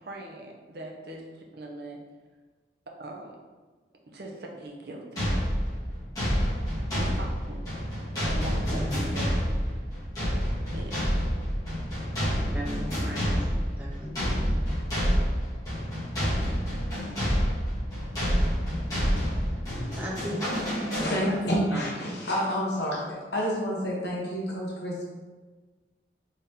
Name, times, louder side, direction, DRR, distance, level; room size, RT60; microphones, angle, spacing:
voice 1, 0.0-2.0 3.0-3.4 4.1-5.4 6.1-6.3 6.9-7.7 8.3-9.6 10.7-11.4, right 1 dB, 65° right, 0 dB, 0.6 m, -42 dB
sound 1, 5.2-21.6, equal, 20° left, 1.4 m, -28 dB
voice 2, 8.7-9.1 12.5-14.7 19.9-20.4 21.7-21.9, equal, 10° right, -4 dB, 0.6 m, -37 dB
voice 3, 21.0-25.0, equal, 75° left, -4 dB, 1.0 m, -29 dB
3.9 x 3.4 x 2.8 m, 1.3 s
head